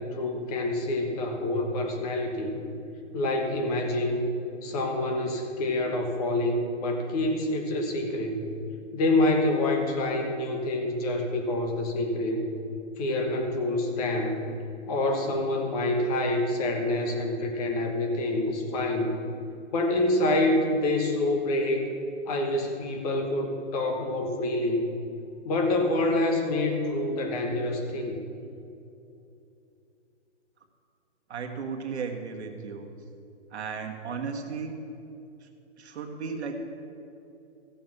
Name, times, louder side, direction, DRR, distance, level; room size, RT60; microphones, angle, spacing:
voice 1, 0.0-2.6 3.1-4.3 4.6-8.4 8.9-12.5 13.0-14.4 14.9-19.2 19.7-21.9 22.3-24.9 25.4-28.2, left 1 dB, 30° left, 3 dB, 1.3 m, -27 dB
voice 2, 31.3-32.9 33.5-34.8 35.4-35.5 35.8-36.6, right 5 dB, 65° right, 2 dB, 1.6 m, -35 dB
15.0 x 6.9 x 6.0 m, 2.7 s
hypercardioid pair, 155°, 36 cm